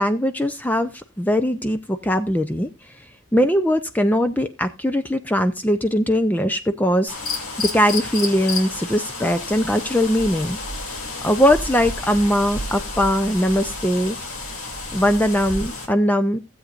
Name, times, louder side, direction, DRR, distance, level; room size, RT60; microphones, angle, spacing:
voice 1, 0.0-3.0 3.3-10.6 11.2-14.2 14.9-16.4, equal, 10° left, 9 dB, 0.5 m, -21 dB
sound 1, 7.1-15.9, left 3 dB, 85° left, 2.8 m, -31 dB
16.5 x 7.9 x 2.5 m, 0.25 s
head